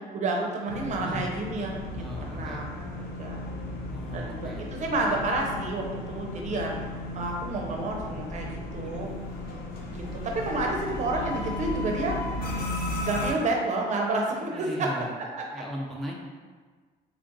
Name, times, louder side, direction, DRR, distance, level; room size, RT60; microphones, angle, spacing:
voice 1, 0.1-3.4 4.1-6.7 7.2-9.1 9.9-12.2 13.0-14.9, right 2 dB, 45° right, 1 dB, 0.7 m, -30 dB
sound 1, 0.7-13.3, left 1 dB, 65° left, 0.7 m, -35 dB
voice 2, 0.8-1.3 1.9-2.6 3.9-4.7 8.8-9.1 14.5-15.2 15.5-16.2, equal, ahead, -3 dB, 0.4 m, -38 dB
3.4 x 2.5 x 3.8 m, 1.5 s
cardioid pair, 110°, 17 cm